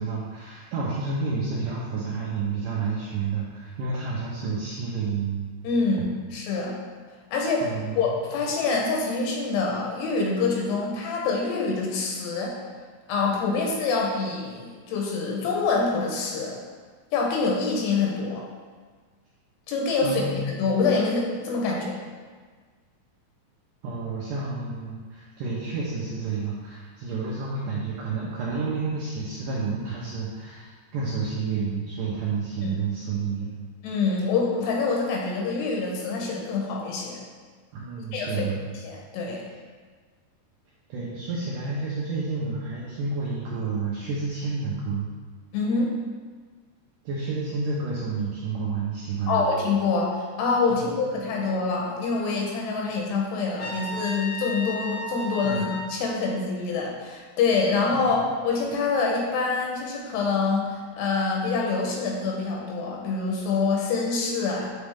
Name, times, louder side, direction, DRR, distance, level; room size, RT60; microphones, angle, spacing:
voice 1, 0.0-5.5 7.6-8.1 20.0-20.4 23.8-33.5 37.7-38.6 40.9-45.1 47.1-49.4 50.7-50.9 53.6-53.8 55.4-55.7 57.9-58.1, right 4 dB, 85° right, -5 dB, 1.9 m, -30 dB
voice 2, 5.6-6.8 7.3-12.5 13.1-16.6 17.1-18.4 19.7-20.2 20.5-22.0 32.6-32.8 33.8-37.2 38.1-38.5 38.8-39.4 45.5-45.9 49.3-64.7, left 4 dB, 85° left, -2 dB, 3.1 m, -26 dB
Trumpet, 53.6-55.9, equal, 35° left, 1.2 m, -34 dB
8.3 x 4.1 x 3.6 m, 1.5 s
omnidirectional pair, 4.9 m